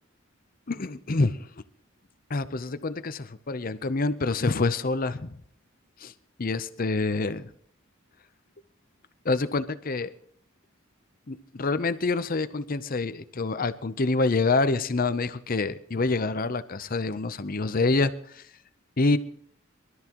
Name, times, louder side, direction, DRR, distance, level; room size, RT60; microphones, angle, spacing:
voice 1, 0.7-1.5 2.3-5.4 6.0-6.1 6.4-7.5 9.2-10.1 11.3-18.4 19.0-19.2, left 3 dB, 40° left, 13 dB, 0.7 m, -27 dB
23.5 x 13.0 x 3.0 m, 0.63 s
head